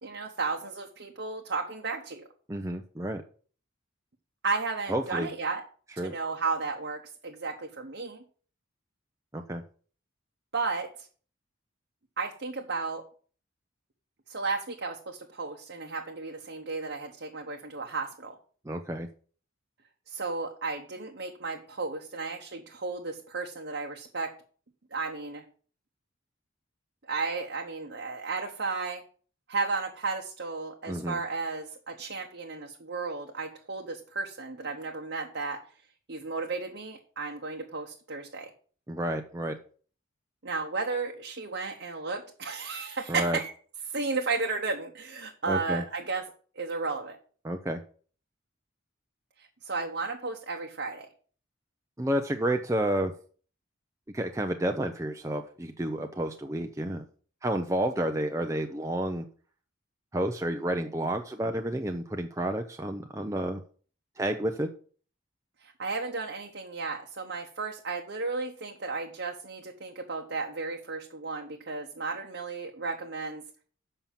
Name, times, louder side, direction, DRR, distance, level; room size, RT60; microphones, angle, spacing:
voice 1, 0.0-2.2 4.4-5.6 6.0-8.2 10.5-11.1 12.2-13.0 14.3-18.4 20.1-24.3 24.9-25.4 27.1-29.0 29.5-35.6 36.1-38.5 40.4-43.5 43.9-46.2 46.6-47.2 49.4-51.1 65.6-73.4, right 4 dB, 60° right, 1 dB, 1.0 m, -34 dB
voice 2, 2.5-3.2 4.9-5.3 6.0-6.1 9.3-9.6 18.6-19.1 30.9-31.2 38.9-39.6 43.1-43.4 45.5-45.8 47.4-47.8 52.0-53.1 54.1-57.0 57.4-59.3 60.1-63.6 64.2-64.7, right 1 dB, 15° right, 4 dB, 0.5 m, -30 dB
7.3 x 5.5 x 7.3 m, 0.43 s
head